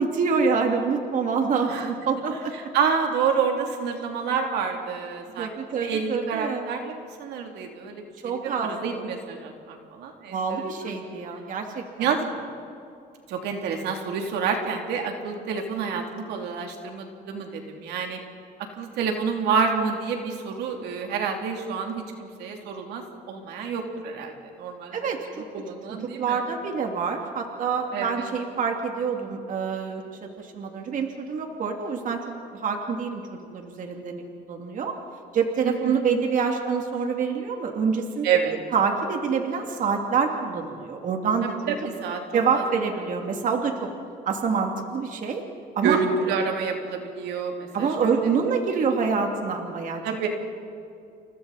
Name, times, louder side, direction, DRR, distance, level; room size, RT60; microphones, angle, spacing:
voice 1, 0.0-2.5 5.4-6.7 8.2-9.0 10.3-12.1 24.9-25.4 25.9-32.2 32.5-34.9 35.3-38.3 38.7-41.7 42.3-43.9 44.3-45.4 45.8-46.0 47.7-50.0, right 5 dB, 50° right, 3 dB, 2.6 m, -26 dB
voice 2, 2.5-5.5 5.8-10.7 12.0-12.5 13.3-18.2 18.7-25.0 25.5-26.4 27.9-28.3 35.6-36.0 38.2-38.5 41.4-42.2 42.5-42.6 45.8-48.1 48.7-48.8 50.0-50.3, right 6 dB, 80° right, 2 dB, 3.0 m, -28 dB
29.5 x 29.0 x 4.2 m, 2.5 s
cardioid pair, 110°, 17 cm